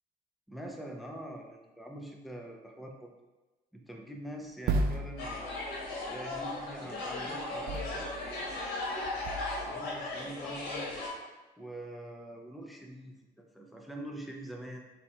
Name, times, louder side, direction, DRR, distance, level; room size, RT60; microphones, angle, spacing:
voice 1, 0.5-3.1 3.7-5.5 6.1-8.2 9.7-11.0 11.6-14.8, right 1 dB, ahead, 1 dB, 0.5 m, -44 dB
sound 1, 4.7-5.9 7.7-8.6 9.1-9.7, right 2 dB, 60° right, 0.4 m, -34 dB
sound 2, 5.2-11.1, left 2 dB, 80° left, 1.4 m, -37 dB
4.3 x 2.4 x 4.3 m, 1.1 s
cardioid pair, 110°, 17 cm